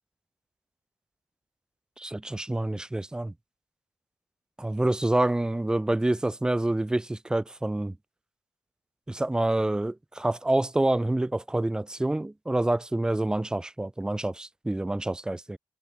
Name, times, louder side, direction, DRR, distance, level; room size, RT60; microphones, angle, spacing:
voice 1, 2.0-3.3 4.6-7.9 9.1-15.6, right 1 dB, 10° right, 1.1 m, -27 dB
cardioid pair, 90°, 7 cm